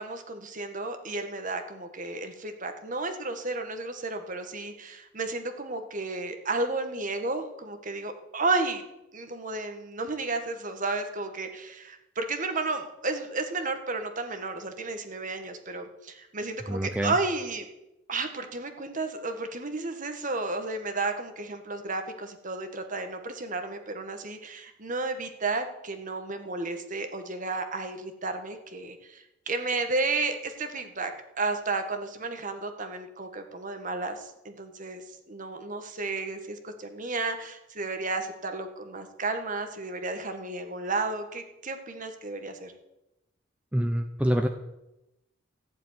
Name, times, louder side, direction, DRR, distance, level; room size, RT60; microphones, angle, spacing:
voice 1, 0.0-8.8 9.1-17.7 18.1-31.1 31.4-42.7, right 3 dB, 40° right, 6 dB, 1.7 m, -32 dB
voice 2, 16.7-17.1 43.7-44.5, equal, 5° right, 4 dB, 0.8 m, -26 dB
15.0 x 7.5 x 9.7 m, 0.93 s
head